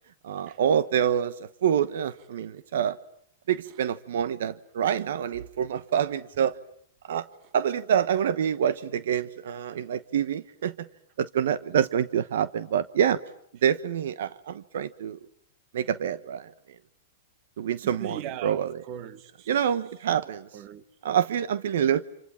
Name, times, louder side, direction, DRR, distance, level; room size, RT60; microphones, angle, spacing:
voice 1, 0.2-1.3 1.6-3.0 3.5-6.5 7.1-7.3 7.5-10.9 11.2-13.2 13.6-15.2 15.7-16.5 17.6-18.7 19.5-20.5 21.0-22.0, right 9 dB, 75° right, 1.1 m, -26 dB
voice 2, 17.8-19.5 20.5-20.8, right 11 dB, 40° right, 1.7 m, -39 dB
29.0 x 28.0 x 7.5 m
hypercardioid pair, 140°, 0 cm